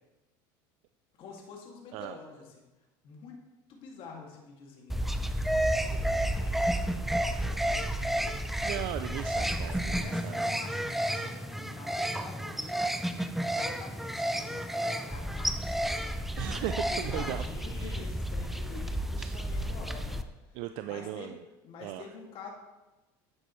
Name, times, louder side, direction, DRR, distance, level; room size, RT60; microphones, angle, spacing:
voice 1, 1.2-2.4 3.0-3.4 3.7-5.1 5.7-7.8 9.6-12.9 13.5-15.5 16.9-20.2 20.9-21.3 21.6-22.5, left 5 dB, 50° left, -1 dB, 2.2 m, -47 dB
sound 1, 4.9-20.2, right 1 dB, ahead, 0.5 m, -31 dB
voice 2, 8.6-10.5 11.3-11.4 16.4-17.4 17.7-18.0 18.5-18.7 19.2-19.3 20.5-21.4 21.8-22.0, right 13 dB, 65° right, 8 dB, 0.4 m, -38 dB
10.5 x 7.8 x 3.2 m, 1.1 s
supercardioid pair, 110°, 11 cm